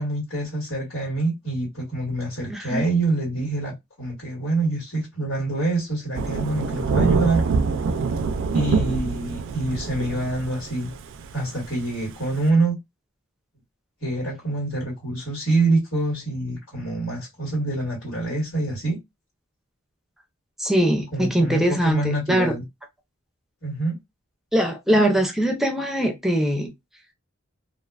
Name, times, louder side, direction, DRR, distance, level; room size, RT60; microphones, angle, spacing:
voice 1, 0.0-7.4 8.5-10.9 11.3-12.8 14.0-19.0 21.1-22.6 23.6-24.0, right 2 dB, 85° left, 1.7 m, -26 dB
voice 2, 2.5-2.8 20.6-22.5 24.5-26.7, equal, ahead, 0.5 m, -22 dB
Thunder / Rain, 6.1-12.5, right 4 dB, 65° right, 0.3 m, -25 dB
2.5 x 2.2 x 2.3 m
head